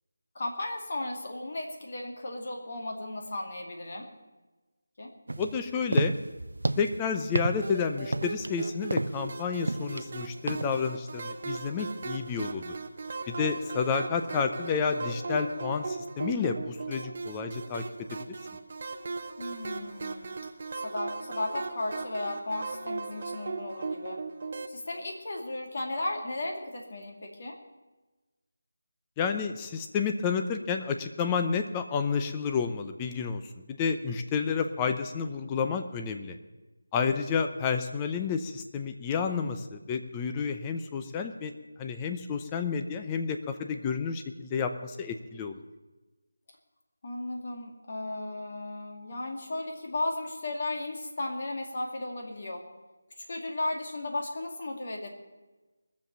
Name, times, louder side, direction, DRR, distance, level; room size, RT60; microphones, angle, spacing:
voice 1, 0.3-4.1 5.0-5.1 19.4-20.3 20.7-24.2 24.7-27.6 47.0-52.6 53.2-55.1, left 2 dB, 45° left, 2 dB, 2.3 m, -35 dB
sound 1, 5.3-10.9, right 2 dB, 80° right, 0.6 m, -31 dB
voice 2, 5.4-6.1 6.8-12.7 13.3-17.8 29.2-33.4 33.7-36.4 36.9-41.5 41.8-45.6, left 6 dB, 15° left, 6 dB, 0.6 m, -30 dB
sound 2, 7.6-24.7, right 4 dB, 40° right, 0.8 m, -38 dB
20.0 x 7.4 x 6.8 m, 1.2 s
figure-of-eight pair, 170°, 0 cm